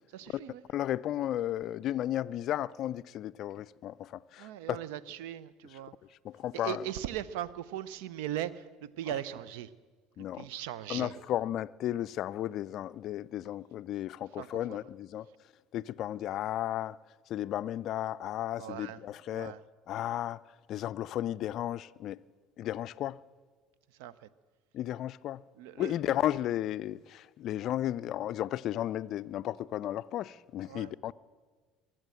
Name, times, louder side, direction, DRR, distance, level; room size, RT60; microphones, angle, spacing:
voice 1, 0.1-0.6 4.4-5.9 6.5-9.7 10.2-11.1 14.4-14.8 18.6-19.0 19.3-19.6 24.0-24.3 25.6-25.9 30.7-30.9, right 11 dB, 70° right, 0.5 m, -39 dB
voice 2, 0.7-4.8 6.2-6.8 10.2-10.5 10.9-15.3 15.7-17.0 17.3-19.5 19.9-20.4 20.7-22.2 22.6-23.2 24.7-25.4 25.8-31.1, left 12 dB, 55° left, 0.4 m, -34 dB
23.0 x 7.6 x 7.7 m
hypercardioid pair, 65°, 0 cm